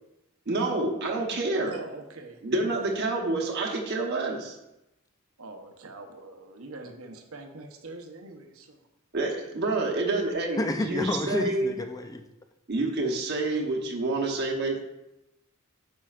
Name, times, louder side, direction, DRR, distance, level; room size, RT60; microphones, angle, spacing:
voice 1, 0.5-1.8 2.4-4.6 9.1-11.7 12.7-14.8, right 2 dB, 55° right, -1 dB, 1.0 m, -28 dB
voice 2, 1.7-2.4 5.4-8.7, right 2 dB, 90° right, 4 dB, 0.9 m, -43 dB
voice 3, 10.6-12.2, left 2 dB, 15° left, 6 dB, 0.5 m, -29 dB
8.6 x 6.3 x 2.5 m, 0.89 s
head